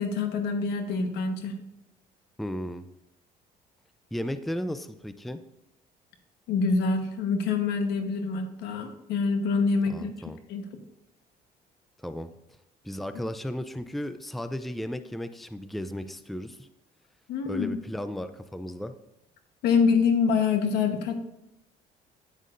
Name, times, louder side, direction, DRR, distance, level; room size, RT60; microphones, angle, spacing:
voice 1, 0.0-1.5 6.5-10.7 17.3-17.8 19.6-21.2, left 5 dB, 85° left, 7 dB, 1.1 m, -26 dB
voice 2, 2.4-2.9 4.1-5.4 9.9-10.4 12.0-12.3 12.8-16.7 17.4-18.9, left 1 dB, ahead, 11 dB, 0.4 m, -35 dB
9.1 x 8.4 x 2.6 m, 0.89 s
cardioid pair, 110°, 17 cm